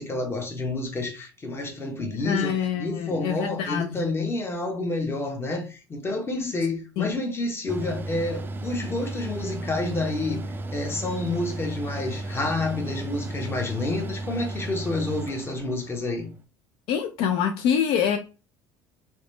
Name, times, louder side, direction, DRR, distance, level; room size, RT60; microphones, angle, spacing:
voice 1, 0.0-10.4 10.7-16.3, left 2 dB, 25° left, 0.9 m, -29 dB
voice 2, 2.2-4.1 6.4-6.5 7.0-7.1 16.9-18.2, left 8 dB, 65° left, 0.4 m, -25 dB
Mechanical fan, 7.7-16.1, right 2 dB, 20° right, 0.3 m, -34 dB
2.9 x 2.1 x 3.1 m
hypercardioid pair, 80°, 10 cm